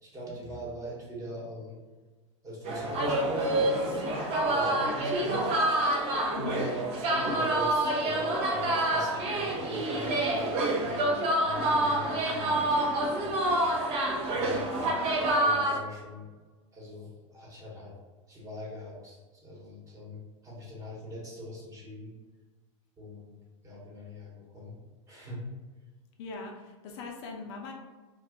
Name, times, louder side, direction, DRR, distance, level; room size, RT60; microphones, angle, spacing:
voice 1, 0.0-1.8 2.4-5.6 6.3-6.8 7.1-11.1 11.4-13.7 14.3-16.3 16.7-17.9 18.3-22.1 23.0-23.3 23.6-24.8 25.1-25.4, equal, 20° right, -5 dB, 1.0 m, -41 dB
sound 1, 2.7-15.8, right 1 dB, 35° right, 0.5 m, -27 dB
voice 2, 6.3-6.7 26.2-27.7, left 4 dB, 60° left, 1 dB, 0.5 m, -40 dB
2.5 x 2.2 x 3.5 m, 1.3 s
supercardioid pair, 130°, 17 cm